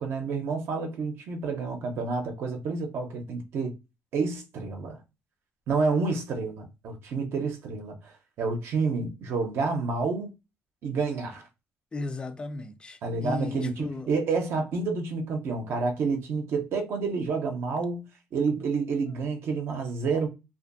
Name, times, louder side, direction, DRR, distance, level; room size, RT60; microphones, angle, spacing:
voice 1, 0.0-3.7 4.1-5.0 5.7-8.1 8.4-10.3 10.8-11.5 13.0-20.3, right 4 dB, 60° right, 0.6 m, -29 dB
voice 2, 11.9-14.1, left 2 dB, 20° left, 0.4 m, -35 dB
2.6 x 2.5 x 2.5 m
cardioid pair, 125°, 5 cm